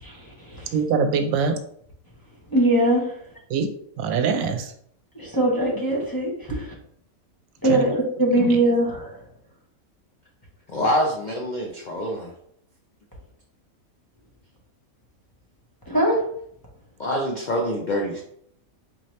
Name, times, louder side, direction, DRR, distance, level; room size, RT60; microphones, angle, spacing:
voice 1, 0.0-0.8 2.5-3.1 5.1-6.7 7.6-7.9 8.2-9.1 15.9-16.2, right 1 dB, 20° left, -4 dB, 0.7 m, -21 dB
voice 2, 0.7-1.6 3.5-3.7 4.0-4.7 7.7-7.8 8.4-8.5, right 5 dB, 80° right, 6 dB, 1.0 m, -23 dB
voice 3, 10.7-12.3 17.0-18.2, equal, 60° left, 0 dB, 0.4 m, -25 dB
4.4 x 2.8 x 3.1 m, 0.67 s
omnidirectional pair, 1.5 m